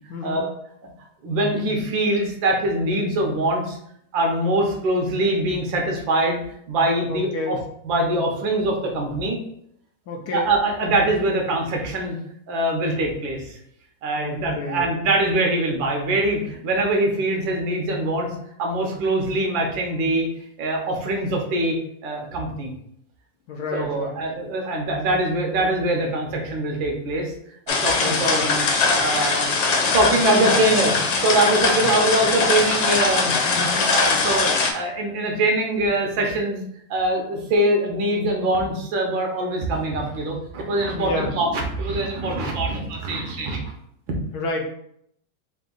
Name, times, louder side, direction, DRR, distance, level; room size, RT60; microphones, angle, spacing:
voice 1, 0.1-0.4 7.1-7.6 10.1-10.5 14.2-14.8 23.5-24.2 28.0-28.4 31.8-31.9 33.5-33.9 40.9-41.3 42.4-42.5 44.3-44.7, left 3 dB, 70° left, 1 dB, 1.1 m, -30 dB
voice 2, 1.2-3.8 4.1-6.4 6.7-7.6 7.8-9.4 10.3-12.2 12.5-13.6 14.0-18.3 18.6-20.3 20.6-21.8 22.0-22.7 23.7-27.3 27.7-28.6 29.0-29.5 29.7-31.0 31.2-33.3 33.8-36.6 36.9-43.7 44.1-44.2, right 1 dB, 85° right, 1 dB, 1.7 m, -23 dB
sound 1, 27.7-34.7, left 4 dB, 85° left, 1.4 m, -21 dB
4.0 x 2.6 x 3.8 m, 0.70 s
omnidirectional pair, 2.0 m